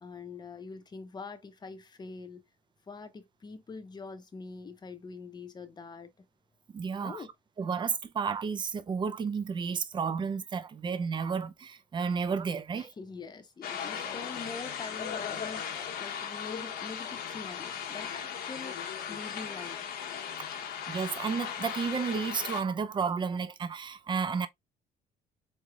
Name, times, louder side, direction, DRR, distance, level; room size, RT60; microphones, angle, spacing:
voice 1, 0.0-2.4 2.9-6.3 7.0-7.3 12.7-19.8, left 4 dB, 25° left, 0.7 m, -44 dB
voice 2, 6.7-7.2 7.6-12.9 20.9-24.5, right 5 dB, 30° right, 0.4 m, -32 dB
sound 1, 13.6-22.6, left 8 dB, 65° left, 0.8 m, -37 dB
4.0 x 3.2 x 2.2 m
cardioid pair, 110°, 17 cm